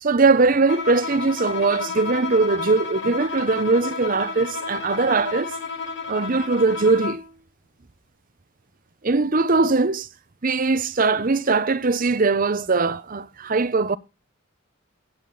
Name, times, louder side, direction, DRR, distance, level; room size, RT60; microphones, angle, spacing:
voice 1, 0.0-5.5 6.1-7.2 9.0-10.1 10.4-14.0, right 3 dB, 40° right, 0.7 m, -21 dB
Bowed string instrument, 0.7-7.3, left 4 dB, 60° left, 2.4 m, -31 dB
15.0 x 8.8 x 4.0 m
head